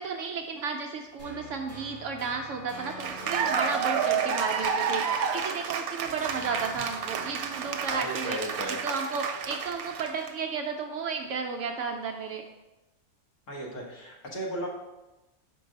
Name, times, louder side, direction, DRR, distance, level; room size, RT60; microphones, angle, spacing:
voice 1, 0.0-8.4 8.7-12.4, right 5 dB, 70° right, 3 dB, 0.8 m, -33 dB
sound 1, 1.2-5.7 6.2-9.3, left 1 dB, 45° left, 2.1 m, -47 dB
Cheering / Applause, 2.7-10.3, right 6 dB, 90° right, 1.1 m, -30 dB
voice 2, 7.9-8.8 13.5-14.7, equal, 60° left, -2 dB, 1.6 m, -35 dB
5.4 x 3.9 x 5.2 m, 1.0 s
omnidirectional pair, 1.5 m